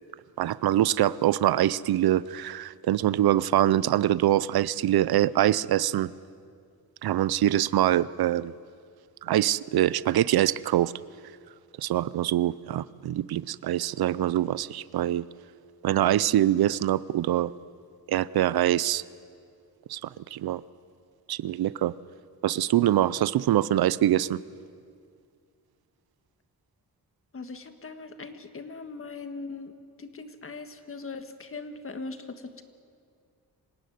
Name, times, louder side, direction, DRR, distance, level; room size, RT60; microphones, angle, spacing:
voice 1, 0.4-6.1 7.0-8.5 9.2-10.9 11.8-15.3 15.8-17.5 18.1-19.0 19.9-20.6 21.3-21.9 22.4-24.4, right 12 dB, 80° right, 19 dB, 0.6 m, -24 dB
voice 2, 27.3-32.6, left 3 dB, 35° left, 8 dB, 1.6 m, -40 dB
26.0 x 17.0 x 9.5 m, 2.3 s
wide cardioid pair, 135°, 37 cm